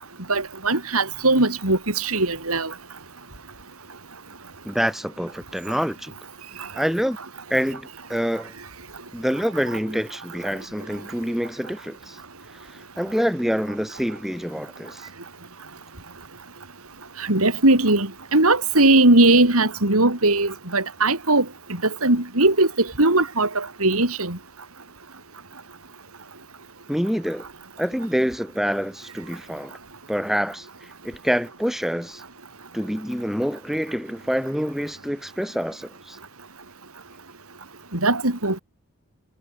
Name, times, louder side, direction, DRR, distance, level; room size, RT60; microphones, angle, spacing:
voice 1, 0.3-2.7 6.6-6.7 17.2-24.4 37.9-38.6, right 2 dB, 75° right, 4.4 m, -19 dB
voice 2, 4.6-6.1 6.7-7.2 7.5-8.5 9.1-12.2 13.0-15.1 26.9-27.5 27.8-29.7 30.1-30.7 31.0-32.2 32.7-36.2, equal, ahead, 5.5 m, -26 dB
head